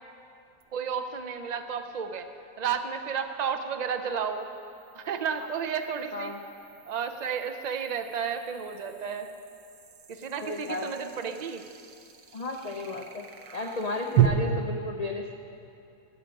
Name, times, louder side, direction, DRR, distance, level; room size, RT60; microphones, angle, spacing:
sound 1, 0.6-0.7 4.1-14.3, right 14 dB, 80° right, 1.3 m, -35 dB
voice 1, 0.7-2.3 2.6-4.5 4.9-6.3 6.8-9.3 10.1-11.6, right 7 dB, 65° right, 7 dB, 0.4 m, -32 dB
voice 2, 6.1-6.5 10.3-10.9 12.3-13.2 13.5-15.3, left 2 dB, 45° left, 2 dB, 0.5 m, -33 dB
13.5 x 9.0 x 5.3 m, 2.7 s
omnidirectional pair, 1.6 m